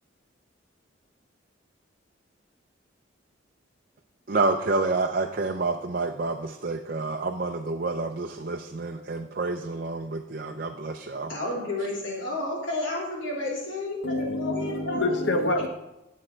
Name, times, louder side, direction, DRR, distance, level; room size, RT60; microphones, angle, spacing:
voice 1, 4.3-11.3, right 3 dB, 45° right, 0.5 m, -28 dB
voice 2, 11.1-15.2, left 2 dB, 75° left, 3.2 m, -31 dB
voice 3, 14.0-15.7, left 2 dB, 60° left, 0.9 m, -26 dB
9.9 x 7.3 x 4.4 m
head